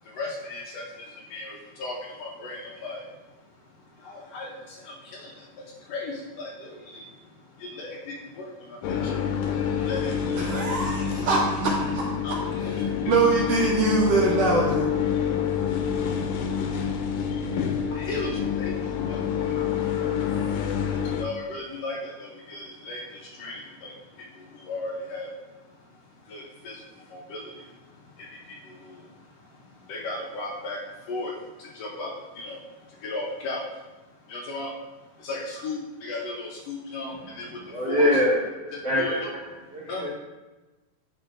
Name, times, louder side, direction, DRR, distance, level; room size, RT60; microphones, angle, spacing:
voice 1, 0.0-10.7 12.2-12.3 12.6-13.2 15.4-38.1 38.7-39.3 39.9-40.1, left 2 dB, 70° left, -3 dB, 1.7 m, -38 dB
sound 1, 8.8-21.2, left 7 dB, 85° left, 2.1 m, -27 dB
voice 2, 10.5-12.0 13.1-14.9, right 3 dB, 70° right, -2 dB, 1.7 m, -23 dB
voice 3, 37.6-39.4 39.7-40.1, left 1 dB, 40° right, -8 dB, 1.7 m, -24 dB
10.5 x 3.6 x 2.5 m, 1.2 s
omnidirectional pair, 3.4 m